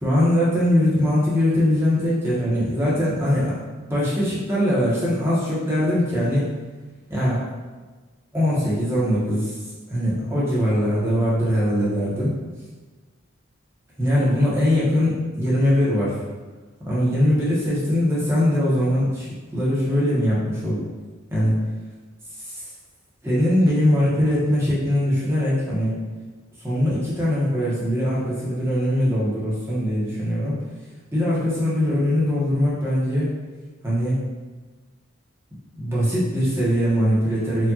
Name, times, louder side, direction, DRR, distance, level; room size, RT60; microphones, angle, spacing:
voice 1, 0.0-3.5 3.9-6.4 7.1-7.4 8.3-9.5 9.9-12.3 14.0-16.1 16.8-20.8 21.3-21.6 22.4-22.6 23.2-25.9 26.6-30.6 31.1-33.3 33.8-34.2 35.7-37.7, equal, 10° right, -8 dB, 1.0 m, -21 dB
4.4 x 2.5 x 2.8 m, 1.3 s
head